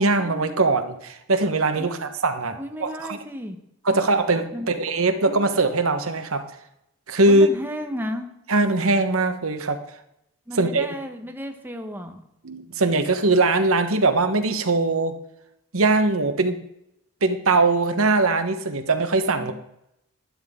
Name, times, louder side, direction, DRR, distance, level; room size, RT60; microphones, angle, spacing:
voice 1, 0.0-3.2 3.8-6.4 7.1-7.5 8.5-9.8 10.6-10.9 12.4-15.1 15.7-16.6 17.2-19.5, right 3 dB, 70° right, 8 dB, 1.2 m, -21 dB
voice 2, 1.8-2.1 2.6-3.6 4.5-4.7 7.3-8.3 10.5-12.2 19.3-19.5, equal, 10° right, 5 dB, 1.1 m, -33 dB
12.0 x 11.0 x 3.7 m, 0.80 s
head